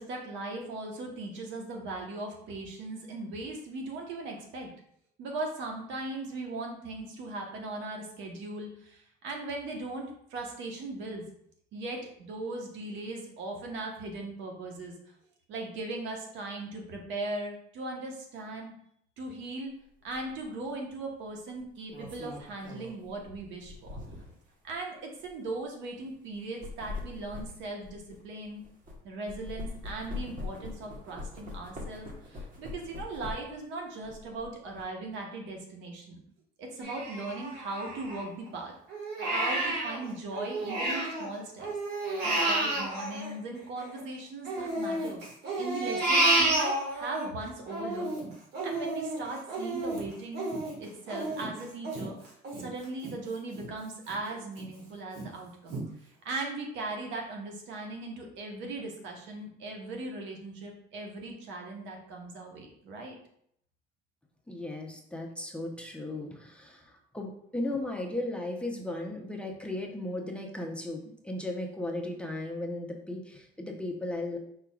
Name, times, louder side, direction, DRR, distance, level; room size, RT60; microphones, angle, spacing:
voice 1, 0.0-4.7 5.2-11.2 11.7-14.9 15.5-18.7 19.2-19.7 20.0-24.0 24.6-28.6 29.0-36.2 36.6-38.7 39.2-41.7 42.0-45.2 45.6-48.1 48.6-50.5 50.8-55.8 56.2-63.1, right 2 dB, 75° right, 1 dB, 1.1 m, -38 dB
sound 1, 20.1-20.3 21.6-24.4 25.1-25.3 26.4-29.0 29.3-33.6 34.0-34.8, left 3 dB, 45° right, 1.3 m, -42 dB
Crying sobbing, 36.8-38.5 38.9-41.3 41.6-44.0 44.5-47.3 47.7-53.1 53.6-53.7 54.1-54.7 55.2-55.3 55.7-55.8, right 2 dB, 60° right, 1.6 m, -31 dB
voice 2, 64.5-74.4, left 1 dB, 5° left, 1 dB, 0.7 m, -36 dB
4.9 x 4.5 x 2.3 m, 0.69 s
cardioid pair, 90°, 20 cm